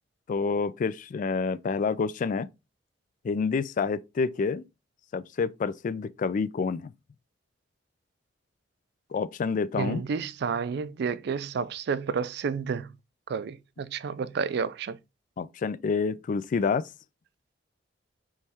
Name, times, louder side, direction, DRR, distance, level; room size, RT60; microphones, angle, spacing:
voice 1, 0.3-2.5 3.2-4.6 5.1-6.9 9.1-10.0 15.4-16.9, left 5 dB, 45° left, 0.3 m, -28 dB
voice 2, 9.8-12.9 13.3-15.0, right 6 dB, 60° right, 0.3 m, -30 dB
4.2 x 3.1 x 3.5 m
head